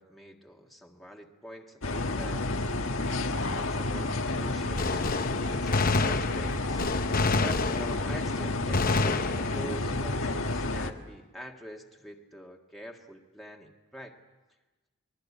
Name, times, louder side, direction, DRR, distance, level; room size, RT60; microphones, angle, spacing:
voice 1, 0.0-2.4 3.2-6.8 7.4-14.2, equal, ahead, 0 dB, 1.8 m, -45 dB
sound 1, 1.8-10.9, left 2 dB, 90° left, 1.5 m, -30 dB
Gunshot gunfire, 4.8-8.3 8.7-9.8, left 3 dB, 45° left, 0.9 m, -28 dB
29.5 x 22.0 x 8.4 m, 1.2 s
head